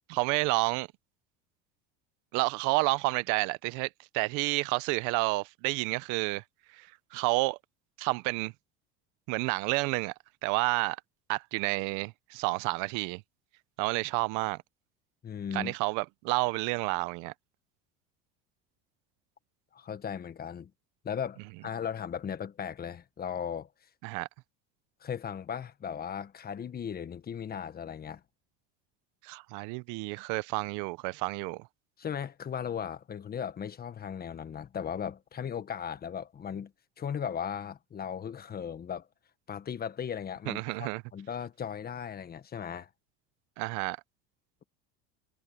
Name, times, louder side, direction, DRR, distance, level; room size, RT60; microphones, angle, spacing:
voice 1, 0.1-0.9 2.3-6.4 6.7-7.6 8.0-8.5 9.3-10.1 10.4-11.0 11.3-13.2 13.8-14.6 15.5-17.3 24.0-24.3 29.2-31.7 40.5-41.0 43.6-44.0, right 25 dB, 70° right, 0.8 m, -30 dB
voice 2, 15.2-15.7 19.7-20.7 21.0-23.7 25.0-28.2 32.0-36.7 37.0-39.1 39.5-42.9, left 8 dB, 30° left, 1.4 m, -37 dB
supercardioid pair, 115°, 31 cm